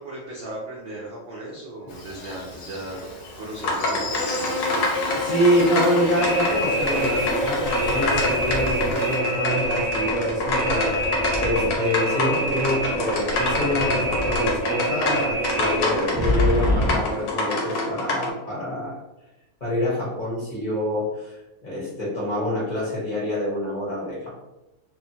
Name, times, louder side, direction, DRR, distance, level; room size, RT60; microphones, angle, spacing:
voice 1, 0.0-3.0 3.4-5.0, right 2 dB, 70° right, -4 dB, 0.5 m, -36 dB
Buzz, 1.9-9.2, left 2 dB, 90° left, 1.3 m, -32 dB
sound 1, 3.6-18.3, left 2 dB, 65° left, 1.0 m, -27 dB
voice 2, 5.1-18.9 19.6-24.4, left 1 dB, 35° left, -7 dB, 0.7 m, -26 dB
sound 2, 6.1-17.0, equal, ahead, 0.7 m, -25 dB
2.8 x 2.2 x 2.7 m, 0.96 s
omnidirectional pair, 1.6 m